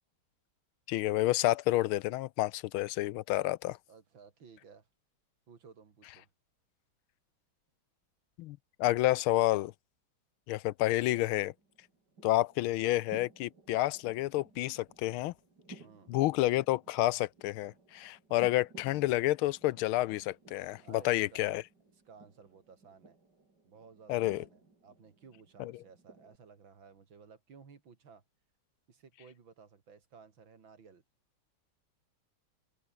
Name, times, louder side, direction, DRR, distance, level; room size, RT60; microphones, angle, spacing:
voice 1, 0.9-3.8 8.4-9.7 10.5-11.5 12.2-15.3 16.1-21.6 24.1-24.4 25.6-25.7, left 16 dB, 85° left, 1.5 m, -29 dB
voice 2, 3.9-4.9 5.5-6.3 15.8-16.1 20.8-21.5 21.9-23.2 23.6-28.2 28.9-31.0, right 5 dB, 65° right, 3.3 m, -56 dB
sound 1, 11.1-26.4, right 3 dB, 50° right, 5.5 m, -58 dB
open air
omnidirectional pair, 2.3 m